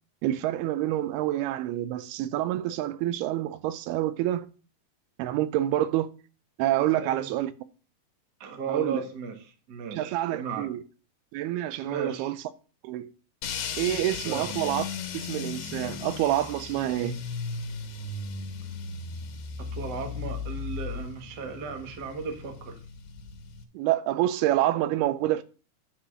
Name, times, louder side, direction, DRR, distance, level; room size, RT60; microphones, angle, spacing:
voice 1, 0.2-4.5 5.2-6.1 6.6-7.5 8.7-9.0 9.9-10.8 11.3-12.4 12.8-13.1 13.8-14.9 15.1-17.2 23.7-25.4, right 13 dB, 90° right, 2.6 m, -27 dB
voice 2, 6.9-7.3 8.4-9.4 9.7-10.7 11.8-12.3 14.2-14.5 19.6-22.8, right 5 dB, 70° right, 0.9 m, -36 dB
sound 1, 13.4-23.6, left 5 dB, 85° left, 3.2 m, -36 dB
10.0 x 4.2 x 6.3 m
omnidirectional pair, 4.4 m